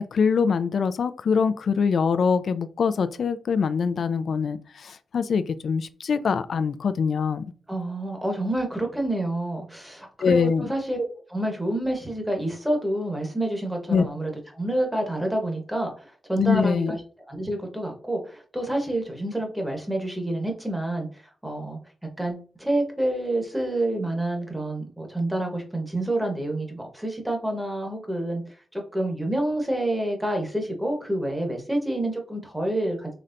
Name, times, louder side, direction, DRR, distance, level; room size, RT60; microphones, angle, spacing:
voice 1, 0.0-7.4 10.2-10.6 13.9-14.0 16.4-16.9, left 6 dB, 65° left, 13 dB, 0.4 m, -23 dB
voice 2, 7.7-17.0 17.3-21.1 21.4-21.8 22.2-28.4 28.7-33.1, right 1 dB, 5° right, 2 dB, 1.1 m, -28 dB
4.0 x 3.2 x 2.5 m, 0.41 s
wide cardioid pair, 110°, 0 cm